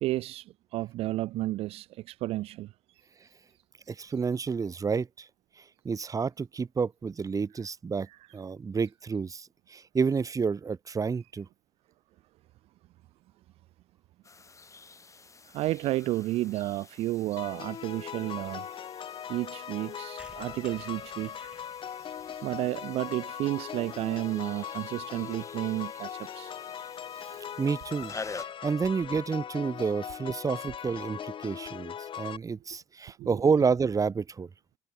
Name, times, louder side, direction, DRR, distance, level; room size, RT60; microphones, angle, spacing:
voice 1, 0.0-2.7 8.1-8.2 15.5-18.7 19.3-21.5 22.1-26.5 33.2-33.5, right 16 dB, 65° right, 0.4 m, -32 dB
voice 2, 3.9-5.3 5.6-8.1 8.3-11.5 27.2-34.5, right 5 dB, 30° right, 1.1 m, -30 dB
sound 1, 14.2-28.4, left 4 dB, 30° left, 3.0 m, -48 dB
sound 2, 17.4-32.4, left 9 dB, 50° left, 2.6 m, -40 dB
sound 3, 20.2-23.9 24.3-24.4 24.6-24.7 24.9-25.0 25.2-25.4, right 1 dB, 10° right, 3.7 m, -58 dB
hypercardioid pair, 65°, 11 cm